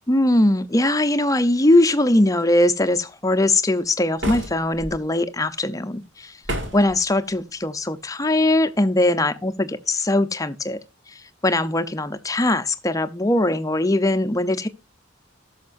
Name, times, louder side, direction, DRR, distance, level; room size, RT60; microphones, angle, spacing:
voice 1, 0.1-6.4 6.7-10.8 11.1-14.7, left 1 dB, 15° left, 0.6 m, -21 dB
sound 1, 4.2-4.9 6.4-7.0, equal, 65° right, 2.1 m, -29 dB
18.5 x 6.5 x 2.5 m
head